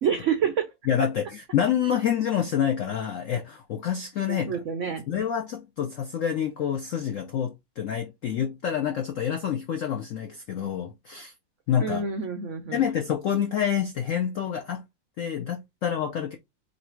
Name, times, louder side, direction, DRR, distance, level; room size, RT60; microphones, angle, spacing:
voice 1, 0.0-0.7 4.3-5.1 11.8-12.8, right 6 dB, 85° right, 0.6 m, -28 dB
voice 2, 0.9-4.6 5.1-11.3 11.7-12.0 12.7-14.9 15.2-16.4, left 9 dB, 80° left, 0.7 m, -27 dB
3.2 x 2.6 x 4.4 m
omnidirectional pair, 2.1 m